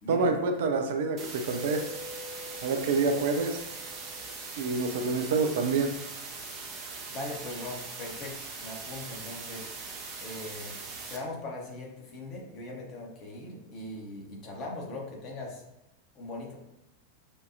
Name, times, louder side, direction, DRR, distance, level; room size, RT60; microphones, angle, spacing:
voice 1, 0.1-1.8 2.6-3.6 4.6-5.9, right 4 dB, 55° right, 5 dB, 0.5 m, -27 dB
sound 1, 1.2-11.2, right 4 dB, 35° right, 0.8 m, -41 dB
Mallet percussion, 1.5-5.0, left 2 dB, 15° left, 0.5 m, -46 dB
voice 2, 7.1-9.7 10.2-10.8 11.1-15.6 16.1-16.6, left 2 dB, 35° left, -1 dB, 1.3 m, -40 dB
6.7 x 2.6 x 2.7 m, 0.91 s
figure-of-eight pair, 90°, 0 cm